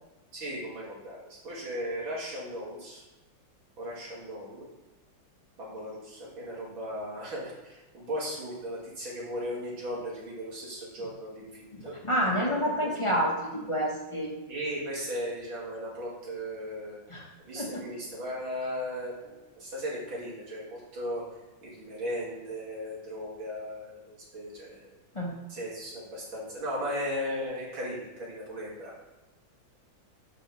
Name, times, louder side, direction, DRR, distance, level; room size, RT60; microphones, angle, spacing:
voice 1, 0.3-3.0 3.8-4.7 5.6-11.9 12.4-12.9 14.5-17.0 17.4-21.3 21.6-25.0 25.5-28.9, equal, 80° right, -6 dB, 3.2 m, -37 dB
voice 2, 11.7-14.3 17.1-17.3 17.5-17.8 25.1-25.4, equal, 25° left, -2 dB, 0.6 m, -29 dB
5.9 x 5.4 x 6.0 m, 1.1 s
omnidirectional pair, 2.2 m